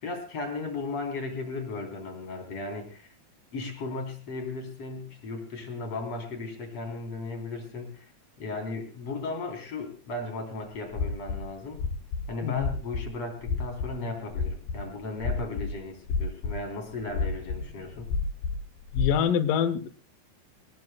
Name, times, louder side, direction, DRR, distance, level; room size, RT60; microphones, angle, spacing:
voice 1, 0.0-3.1 3.5-8.1 8.4-11.8 12.3-18.1, left 3 dB, 35° left, 4 dB, 4.5 m, -36 dB
sound 1, 10.9-12.3 12.6-13.1 13.4-15.8 16.1-16.6 16.9-19.2, left 5 dB, 55° left, 5.5 m, -30 dB
voice 2, 18.9-19.9, left 9 dB, 90° left, 12 dB, 1.9 m, -25 dB
27.5 x 18.5 x 2.3 m, 0.34 s
omnidirectional pair, 5.3 m